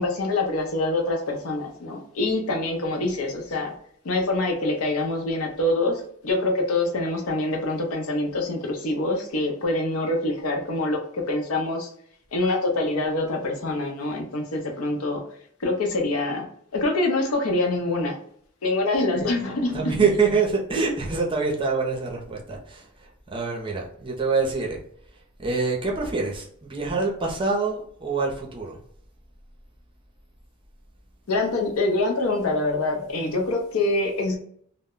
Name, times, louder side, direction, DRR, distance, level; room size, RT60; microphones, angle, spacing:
voice 1, 0.0-3.7 4.0-11.9 12.3-15.2 15.6-16.5 16.7-18.2 18.6-20.1 31.3-34.4, left 2 dB, 85° left, 2 dB, 0.6 m, -25 dB
voice 2, 19.7-24.8 25.4-28.8, right 4 dB, 25° right, -1 dB, 0.5 m, -25 dB
2.1 x 2.0 x 3.6 m, 0.62 s
head